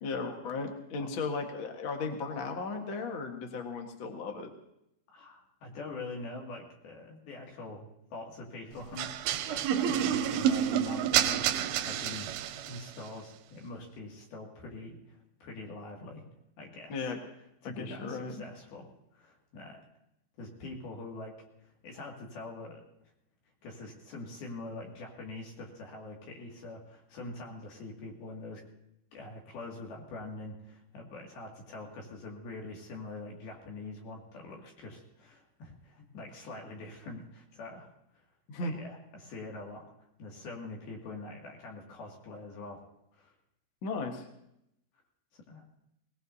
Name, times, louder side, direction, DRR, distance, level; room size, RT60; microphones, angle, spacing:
voice 1, 0.0-4.5 16.9-17.2 17.6-18.4 38.5-38.7 43.8-44.2, left 4 dB, 80° left, 3 dB, 1.1 m, -36 dB
voice 2, 5.1-12.3 12.6-16.2 16.6-17.1 17.6-19.8 20.4-21.4 21.6-22.8 23.6-28.6 29.1-37.9 38.6-39.8 40.2-42.8 43.1-43.3 45.3-45.6, left 2 dB, 65° left, 0 dB, 4.0 m, -44 dB
sound 1, 9.0-12.9, right 9 dB, 80° right, 2.4 m, -29 dB
20.5 x 20.0 x 2.8 m, 0.81 s
omnidirectional pair, 4.9 m